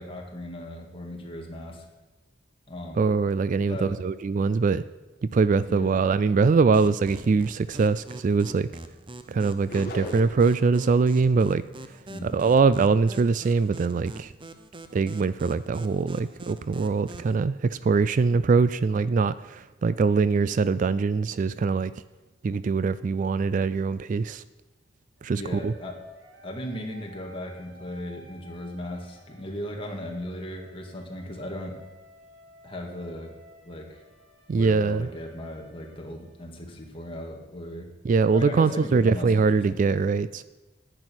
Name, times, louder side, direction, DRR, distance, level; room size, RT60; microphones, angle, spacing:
voice 1, 0.0-1.9 2.7-3.1 3.7-3.9 5.7-6.1 12.1-12.4 25.3-26.0 26.4-31.8 32.6-33.3 33.7-34.0 34.5-37.9 38.3-40.0, left 1 dB, 30° left, 1 dB, 1.9 m, -37 dB
voice 2, 3.0-4.8 5.3-8.7 9.3-11.6 12.2-14.3 14.9-21.9 22.4-24.4 25.2-25.7 34.5-35.1 38.0-40.4, right 4 dB, 45° right, 16 dB, 0.3 m, -23 dB
sound 1, 6.7-17.4, right 2 dB, 25° right, 0.7 m, -44 dB
sound 2, 9.7-10.6, left 1 dB, 55° left, 1.7 m, -37 dB
sound 3, 25.2-37.0, equal, 75° right, 2.3 m, -54 dB
10.5 x 9.0 x 6.2 m, 1.1 s
head